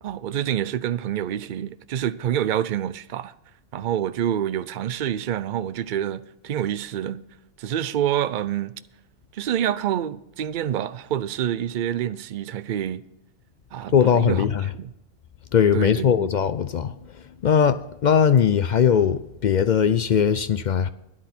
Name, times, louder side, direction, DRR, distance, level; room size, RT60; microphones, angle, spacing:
voice 1, 0.0-3.3 3.7-7.2 7.6-8.8 9.3-13.0 13.7-14.9 15.7-16.3, right 10 dB, 55° right, 0.5 m, -27 dB
voice 2, 13.9-14.7 15.5-16.9 17.4-20.9, left 7 dB, 65° left, 0.4 m, -20 dB
12.0 x 10.5 x 4.3 m
omnidirectional pair, 1.3 m